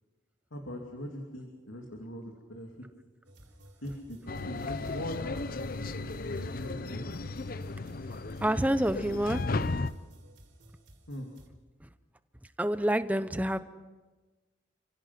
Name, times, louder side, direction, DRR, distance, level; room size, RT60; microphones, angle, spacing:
voice 1, 0.5-2.7 3.8-5.3 6.3-7.0 11.1-11.3, equal, 85° left, 1 dB, 2.8 m, -41 dB
sound 1, 3.2-11.5, right 1 dB, 65° right, 4.0 m, -55 dB
sound 2, 4.3-9.9, left 3 dB, 45° left, 0.6 m, -35 dB
voice 2, 8.4-9.4 11.8-11.9 12.6-13.6, right 1 dB, 10° right, 12 dB, 0.7 m, -28 dB
30.0 x 16.5 x 6.1 m, 1.3 s
head